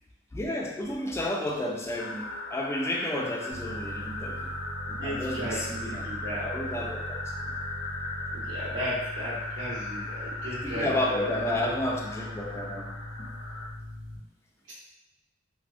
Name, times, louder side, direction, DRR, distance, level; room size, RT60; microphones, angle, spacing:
voice 1, 0.3-4.5 5.0-6.1 6.3-7.5 10.6-12.9 13.2-13.3, left 1 dB, 15° left, -1 dB, 0.3 m, -31 dB
sound 1, 2.0-13.7, left 2 dB, 80° left, 0.4 m, -38 dB
sound 2, 3.5-14.2, equal, 30° right, 0.6 m, -41 dB
voice 2, 4.9-6.5 8.3-11.7, equal, 65° right, -7 dB, 1.1 m, -36 dB
3.3 x 2.1 x 2.4 m, 0.93 s
head